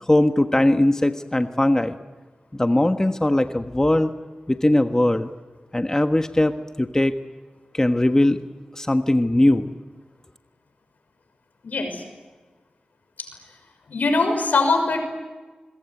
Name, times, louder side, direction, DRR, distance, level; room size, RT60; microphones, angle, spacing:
voice 1, 0.1-1.9 2.5-4.1 4.5-5.3 5.7-7.1 7.7-8.4 8.8-9.7, left 1 dB, 20° left, 7 dB, 1.4 m, -20 dB
voice 2, 11.6-12.0 13.2-13.3 13.9-15.0, left 3 dB, 80° left, 6 dB, 6.2 m, -22 dB
26.0 x 22.5 x 9.5 m, 1.3 s
cardioid pair, 40°, 3 cm